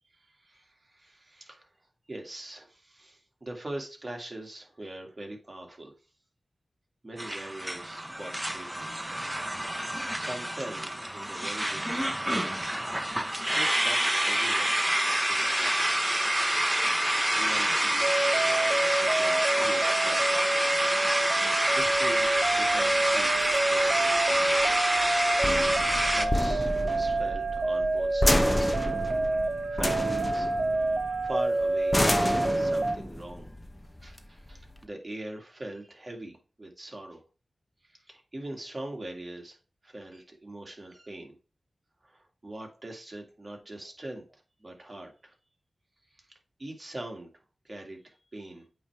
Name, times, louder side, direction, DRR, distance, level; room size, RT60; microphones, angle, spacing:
voice 1, 0.1-1.7 2.1-5.9 7.0-8.9 10.2-12.2 13.5-14.8 15.1-16.0 17.1-20.4 21.5-24.8 25.5-28.8 29.4-30.5 31.2-33.5 34.0-37.2 37.8-39.6 39.8-41.4 42.0-44.2 44.6-45.3 46.1-46.3 46.6-47.3 47.6-48.7, right 1 dB, 40° right, 1 dB, 2.0 m, -42 dB
sound 1, 7.2-26.3, right 1 dB, 10° right, 0.7 m, -27 dB
sound 2, 18.0-33.0, right 2 dB, 65° right, 0.6 m, -28 dB
sound 3, 21.8-34.8, left 1 dB, 20° left, 0.9 m, -31 dB
8.3 x 3.2 x 4.6 m, 0.35 s
cardioid pair, 50°, 0 cm